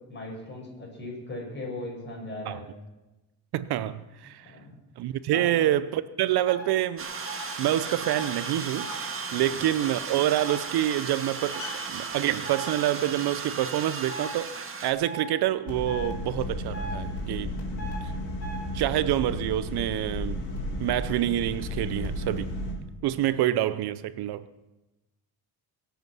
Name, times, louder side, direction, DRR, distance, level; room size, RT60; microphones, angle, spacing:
voice 1, 0.1-2.7 4.4-4.8 5.3-5.5 9.3-9.4 17.5-17.9, left 2 dB, 25° left, 6.3 m, -39 dB
voice 2, 3.5-4.5 5.0-7.1 7.6-14.5 14.8-17.6 18.0-18.1 18.7-20.4 20.8-22.5 23.0-24.5, right 13 dB, 70° right, 0.7 m, -27 dB
sound 1, 6.5-6.6 7.2-7.5 8.0-8.2 8.8-9.0 10.4-10.6 11.5-11.7 12.4-12.7 14.1-14.3 15.0-15.2 15.9-16.1 16.7-17.0 17.8-18.0 18.4-18.6, right 2 dB, 45° left, 6.1 m, -37 dB
sound 2, 7.0-14.9, right 5 dB, 35° right, 1.8 m, -35 dB
sound 3, 15.7-22.7, left 1 dB, 85° left, 4.6 m, -33 dB
22.5 x 8.2 x 6.2 m
cardioid pair, 135°, 40 cm